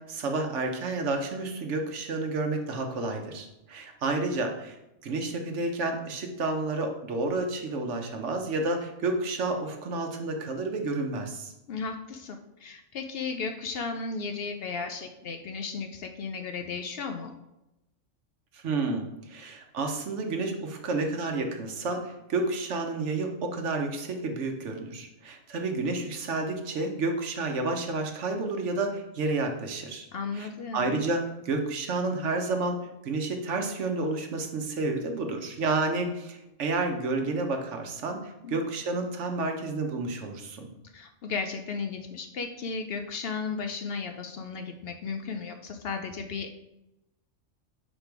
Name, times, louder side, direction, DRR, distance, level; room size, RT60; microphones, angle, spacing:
voice 1, 0.1-4.8 5.0-11.5 18.5-30.1 30.3-32.8 33.0-40.7, right 3 dB, 70° right, 4 dB, 1.2 m, -30 dB
voice 2, 11.7-17.3 30.1-31.0 38.4-38.6 40.9-46.5, left 5 dB, 60° left, 6 dB, 0.7 m, -35 dB
5.3 x 4.1 x 4.6 m, 0.92 s
omnidirectional pair, 1.3 m